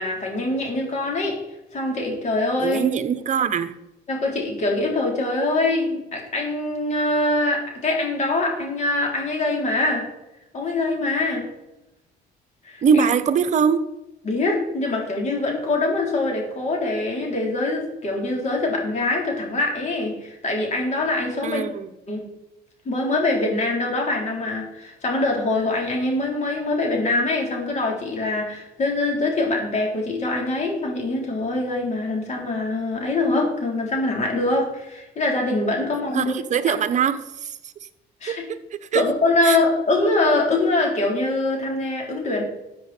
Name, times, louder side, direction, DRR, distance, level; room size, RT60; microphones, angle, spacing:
voice 1, 0.0-1.4 1.7-2.8 4.1-10.1 10.5-11.5 12.6-13.1 14.2-21.7 22.1-22.3 22.9-36.3 38.2-38.5 38.9-42.4, left 2 dB, 45° left, 4.1 m, -23 dB
voice 2, 2.6-3.8 12.8-13.9 21.4-21.9 36.1-37.5 38.3-38.4 38.9-39.0 39.4-39.6, right 7 dB, 45° right, 1.0 m, -22 dB
13.5 x 7.8 x 4.5 m
cardioid pair, 110°, 17 cm